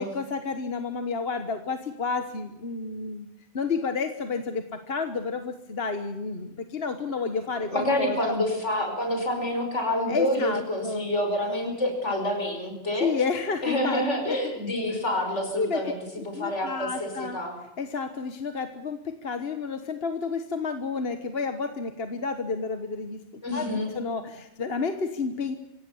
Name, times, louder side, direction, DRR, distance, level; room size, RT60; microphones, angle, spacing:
voice 1, 0.1-3.3 3.5-8.3 10.1-11.0 13.0-14.4 15.6-15.9 16.3-17.4 17.8-25.6, left 4 dB, 60° left, 8 dB, 1.5 m, -31 dB
voice 2, 7.5-13.1 13.6-16.0 16.3-17.6 23.4-24.0, left 1 dB, 85° left, 4 dB, 5.7 m, -28 dB
26.0 x 17.0 x 7.1 m, 0.88 s
omnidirectional pair, 1.2 m